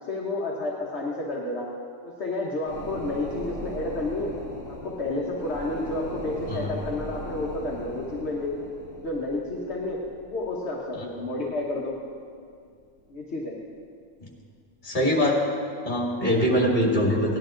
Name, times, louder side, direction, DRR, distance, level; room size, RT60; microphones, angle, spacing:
voice 1, 0.1-1.7 2.0-4.3 4.7-8.5 8.9-10.0 10.3-11.9 13.1-13.5, left 2 dB, 55° left, -3 dB, 1.5 m, -30 dB
sound 1, 2.6-12.6 13.0-13.1, equal, 25° right, 4.1 m, -39 dB
voice 2, 14.8-15.5 15.8-17.4, equal, 35° left, -3 dB, 2.5 m, -23 dB
17.5 x 11.0 x 3.8 m, 2.2 s
omnidirectional pair, 1.4 m